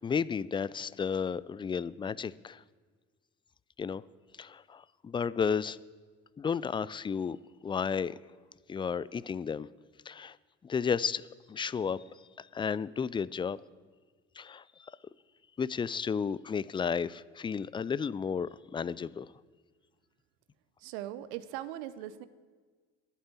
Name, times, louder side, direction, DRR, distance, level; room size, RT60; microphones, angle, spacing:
voice 1, 0.0-2.6 3.8-4.0 4.4-5.8 6.4-7.4 7.6-8.2 8.7-9.7 10.1-10.4 10.6-12.0 12.4-13.6 14.4-14.9 15.6-19.3, left 6 dB, 15° left, 19 dB, 0.3 m, -33 dB
voice 2, 20.8-22.3, right 13 dB, 65° right, 15 dB, 0.8 m, -40 dB
11.5 x 8.7 x 8.5 m, 1.5 s
figure-of-eight pair, 50°, 39 cm